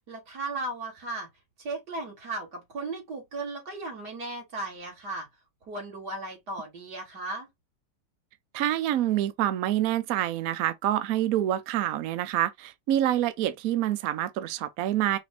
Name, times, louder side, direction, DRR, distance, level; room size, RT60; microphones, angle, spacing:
voice 1, 0.1-1.3 1.6-5.3 5.7-7.5, right 2 dB, 55° right, 2.7 m, -36 dB
voice 2, 8.5-15.2, right 12 dB, 75° right, 0.8 m, -27 dB
5.1 x 2.5 x 3.2 m
omnidirectional pair, 2.0 m